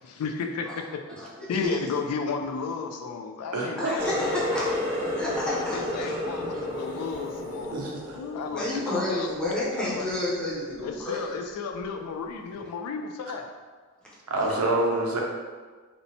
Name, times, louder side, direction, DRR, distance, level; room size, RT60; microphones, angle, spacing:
voice 1, 0.0-1.0 1.5-4.8 5.5-7.8 8.1-9.3 9.8-10.1 10.8-13.5, left 5 dB, 85° left, 4 dB, 0.3 m, -33 dB
voice 2, 1.2-1.8 3.8-6.2 8.5-11.3 14.5-14.6, left 1 dB, 5° left, -7 dB, 0.5 m, -31 dB
voice 3, 3.5-3.9 7.7-8.2 14.3-15.2, right 2 dB, 85° right, -1 dB, 0.5 m, -27 dB
Water tap faucet, 4.0-9.5 9.8-10.3 10.8-11.0 11.8-11.9, left 1 dB, 65° left, 0.8 m, -32 dB
2.9 x 2.1 x 2.6 m, 1.4 s
head